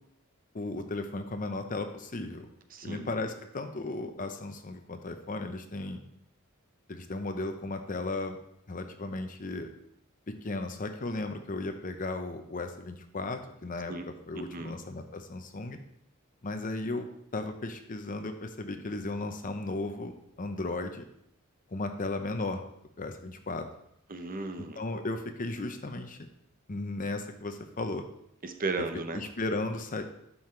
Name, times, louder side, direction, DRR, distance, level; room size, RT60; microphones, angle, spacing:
voice 1, 0.5-2.5 2.8-6.0 6.9-8.4 8.7-9.7 10.3-15.8 16.4-21.0 21.7-22.6 23.0-23.7 24.8-26.2 26.7-28.0 28.8-28.9 29.1-30.0, left 2 dB, 40° left, 7 dB, 0.7 m, -35 dB
voice 2, 2.7-3.1 13.9-14.1 14.3-14.7 24.1-24.8 28.4-29.2, right 3 dB, 40° right, 7 dB, 0.7 m, -35 dB
12.0 x 5.6 x 3.2 m, 0.75 s
head